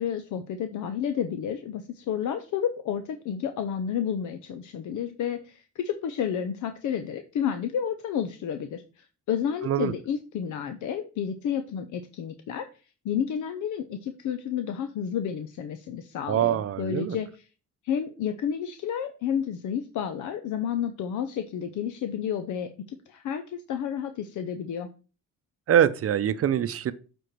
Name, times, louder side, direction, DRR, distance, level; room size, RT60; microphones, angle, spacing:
voice 1, 0.0-12.7 13.0-17.3 17.8-22.7 23.1-24.9, left 8 dB, 75° left, 0.8 m, -31 dB
voice 2, 16.3-17.2 25.7-26.9, right 10 dB, 50° right, 0.6 m, -24 dB
7.8 x 4.5 x 4.6 m
cardioid pair, 90°, 30 cm